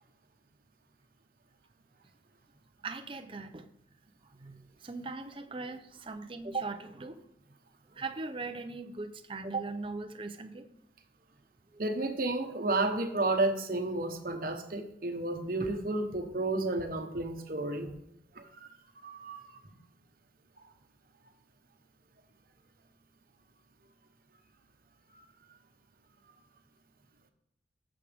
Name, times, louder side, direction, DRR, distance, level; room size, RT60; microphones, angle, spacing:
voice 1, 2.8-3.7 4.3-7.2 7.9-10.7 11.7-11.8, right 3 dB, 30° right, 8 dB, 0.6 m, -39 dB
voice 2, 11.8-17.9 18.4-18.7 19.0-19.4 19.6-19.7, right 2 dB, 50° right, 5 dB, 1.1 m, -32 dB
14.5 x 6.2 x 3.5 m, 0.76 s
head